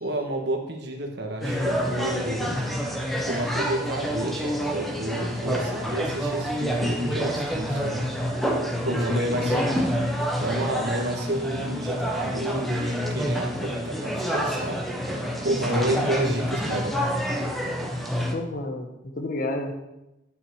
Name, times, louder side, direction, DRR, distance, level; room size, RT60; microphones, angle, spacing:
voice 1, 0.0-2.6 3.1-8.1 8.8-9.5 10.4-14.8 15.1-17.0, right 1 dB, 55° right, 3 dB, 1.5 m, -29 dB
sound 1, 1.4-18.3, equal, ahead, 1.0 m, -28 dB
voice 2, 8.9-9.7 16.0-16.3 18.3-19.7, left 2 dB, 45° left, 5 dB, 1.1 m, -31 dB
9.5 x 6.1 x 6.3 m, 0.95 s
head